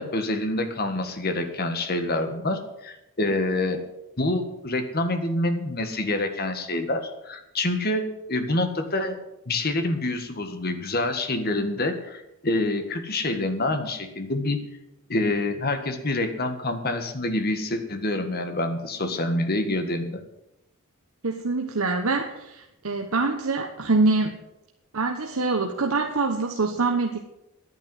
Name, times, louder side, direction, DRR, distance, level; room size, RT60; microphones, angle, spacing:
voice 1, 0.0-3.8 4.2-9.2 9.5-14.6 15.1-20.2, left 2 dB, 45° left, 7 dB, 1.7 m, -27 dB
voice 2, 21.2-24.4 24.9-27.2, right 3 dB, 85° right, 3 dB, 1.2 m, -25 dB
11.0 x 9.6 x 7.8 m, 0.89 s
head